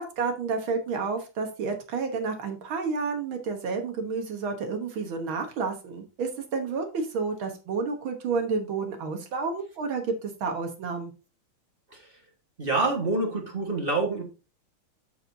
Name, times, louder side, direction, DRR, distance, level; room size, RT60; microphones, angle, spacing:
voice 1, 0.0-11.1, right 4 dB, 75° right, 4 dB, 2.0 m, -30 dB
voice 2, 12.6-14.2, right 3 dB, 30° right, 1 dB, 1.6 m, -26 dB
13.5 x 4.6 x 2.7 m, 0.31 s
omnidirectional pair, 2.2 m